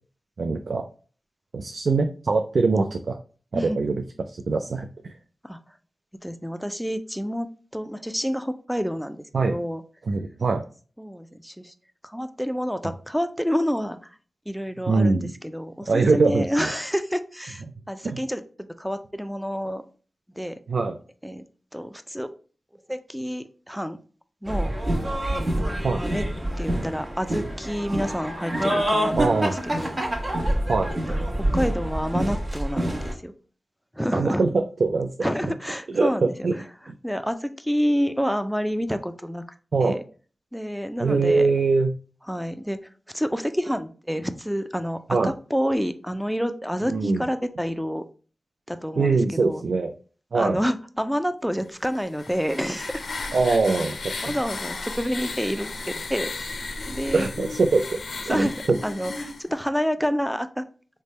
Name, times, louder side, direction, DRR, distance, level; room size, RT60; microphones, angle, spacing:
voice 1, 0.4-0.8 1.5-3.2 3.5-5.1 9.3-9.6 10.1-10.6 14.9-15.3 15.9-16.5 18.0-18.2 20.7-21.0 25.8-26.0 28.0-28.1 29.2-29.5 30.7-30.9 34.1-35.1 35.9-36.5 36.9-37.0 39.7-40.0 41.0-41.9 45.1-45.3 46.9-47.2 49.0-49.9 50.3-50.6 53.3-54.2 57.1-58.0 58.3-58.8, right 3 dB, 75° right, 5 dB, 0.3 m, -22 dB
voice 2, 5.4-5.8 6.2-7.5 7.7-9.8 11.0-11.7 12.0-14.2 14.5-18.4 18.8-19.8 20.4-20.6 21.2-21.4 21.7-22.3 22.7-24.0 24.4-24.7 25.3-26.3 26.6-30.0 31.1-33.3 33.9-34.4 35.2-36.6 37.0-39.4 39.8-40.0 40.5-41.5 42.3-48.0 48.7-49.6 50.3-53.0 53.4-54.0 54.2-56.5 56.8-57.3 58.3-60.6, equal, ahead, 10 dB, 0.4 m, -28 dB
sound 1, 24.5-33.1, right 1 dB, 35° right, 1.1 m, -26 dB
sound 2, 51.9-59.4, left 3 dB, 85° left, 0.4 m, -35 dB
3.3 x 2.2 x 4.0 m, 0.39 s
cardioid pair, 55°, 0 cm